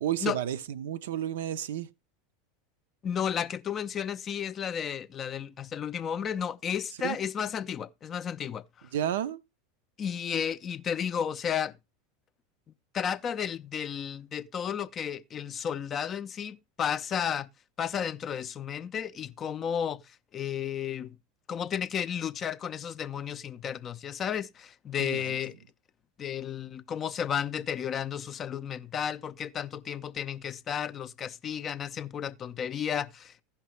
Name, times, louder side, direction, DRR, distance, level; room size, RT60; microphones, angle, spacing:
voice 1, 0.0-1.9 7.0-7.2 8.9-9.4 25.0-25.4, right 10 dB, 60° right, 0.5 m, -31 dB
voice 2, 3.0-8.6 10.0-11.7 12.9-17.5 17.8-20.0 20.3-21.2 21.5-25.5 26.2-33.4, left 8 dB, 30° left, 0.4 m, -33 dB
15.5 x 5.8 x 3.0 m
figure-of-eight pair, 80°, 0 cm